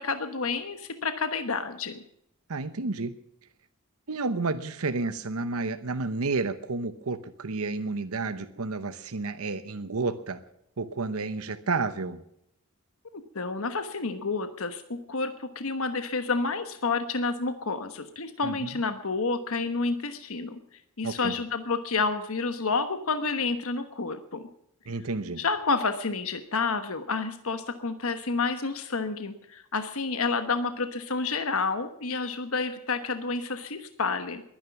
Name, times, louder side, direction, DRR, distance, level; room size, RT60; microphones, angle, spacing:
voice 1, 0.0-2.0 13.3-20.6 21.0-24.5 25.4-34.4, left 4 dB, 70° left, 9 dB, 1.2 m, -29 dB
voice 2, 2.5-3.1 4.1-10.4 10.8-12.2 18.4-18.5 21.0-21.3 24.9-25.4, right 3 dB, 75° right, 10 dB, 0.9 m, -31 dB
21.5 x 10.0 x 6.0 m, 0.76 s
head